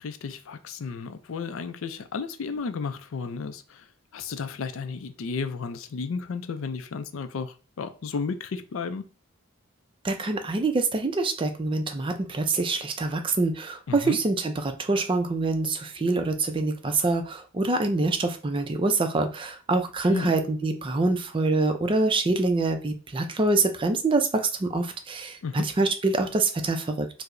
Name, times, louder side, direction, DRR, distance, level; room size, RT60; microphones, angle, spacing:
voice 1, 0.0-9.0 13.9-14.2 20.0-20.3 25.4-25.6, left 5 dB, 65° left, 0.4 m, -33 dB
voice 2, 10.0-27.2, right 3 dB, 25° right, 0.4 m, -25 dB
4.6 x 2.0 x 2.5 m
head